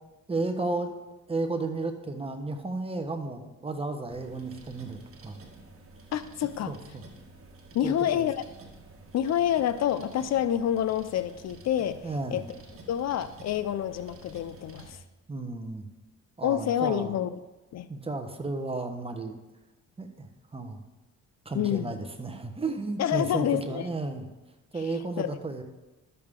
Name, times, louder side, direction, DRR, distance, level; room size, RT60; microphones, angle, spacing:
voice 1, 0.3-0.9 1.3-5.4 6.7-7.0 7.8-8.3 12.0-12.4 15.3-15.8 16.4-17.1 17.9-19.4 20.0-20.8 21.4-24.2 24.7-25.6, right 3 dB, 20° right, 6 dB, 1.2 m, -33 dB
sound 1, 4.1-14.9, right 2 dB, 45° right, 1.6 m, -50 dB
voice 2, 6.1-6.7 7.7-8.4 9.1-12.4 12.9-15.0 16.4-17.3 17.7-17.9 21.5-21.9 23.0-23.8 25.2-25.4, left 10 dB, 60° left, 13 dB, 0.5 m, -28 dB
12.0 x 6.9 x 3.7 m, 1.1 s
cardioid pair, 90°, 30 cm